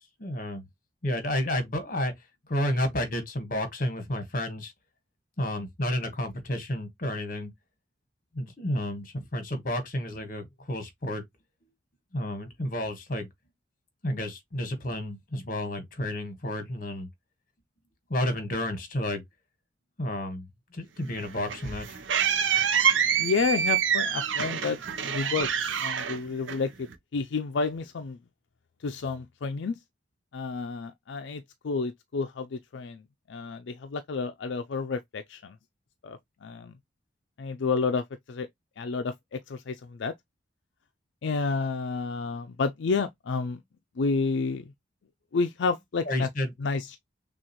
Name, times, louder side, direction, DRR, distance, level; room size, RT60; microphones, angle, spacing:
voice 1, 0.2-0.6 1.0-2.1 2.5-4.7 5.4-7.5 8.3-11.2 12.1-13.3 14.0-17.1 18.1-19.2 20.0-20.5 20.7-21.8 46.0-46.5, left 1 dB, 45° left, 1.4 m, -31 dB
sound 1, 21.1-26.9, right 8 dB, 85° right, 0.7 m, -27 dB
voice 2, 23.2-25.5 25.8-28.2 28.8-29.8 30.3-33.0 33.3-35.6 36.0-36.7 37.4-38.5 38.8-40.1 41.2-43.6 44.0-44.7 45.3-46.3 46.6-47.0, left 4 dB, 75° left, 0.4 m, -30 dB
6.1 x 2.4 x 3.0 m
head